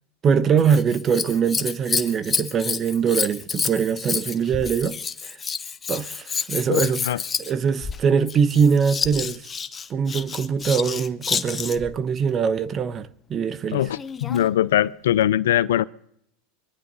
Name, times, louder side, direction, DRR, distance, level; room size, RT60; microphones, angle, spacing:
voice 1, 0.2-5.0 5.2-5.4 5.9-7.0 7.4-9.4 9.9-13.8, right 6 dB, 35° right, 1.0 m, -22 dB
Scissors, 0.6-11.9 13.9-14.5 15.2-15.3, left 6 dB, 25° left, 0.9 m, -29 dB
voice 2, 13.7-15.8, left 12 dB, 80° left, 0.6 m, -21 dB
24.5 x 10.5 x 4.1 m
hypercardioid pair, 100°, 0 cm